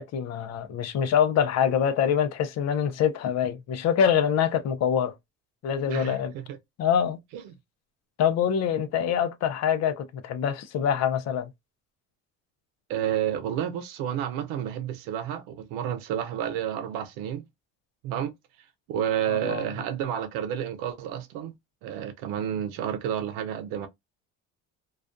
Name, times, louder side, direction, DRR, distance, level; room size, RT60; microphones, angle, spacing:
voice 1, 0.0-5.1 5.6-6.3 6.8-7.2 8.2-11.5 19.3-19.6, left 8 dB, 55° left, 0.5 m, -25 dB
voice 2, 5.9-6.6 7.3-7.4 12.9-17.4 18.0-18.3 18.9-21.5 21.8-23.9, right 10 dB, 90° right, 0.6 m, -30 dB
2.3 x 2.2 x 2.5 m
cardioid pair, 110°, 32 cm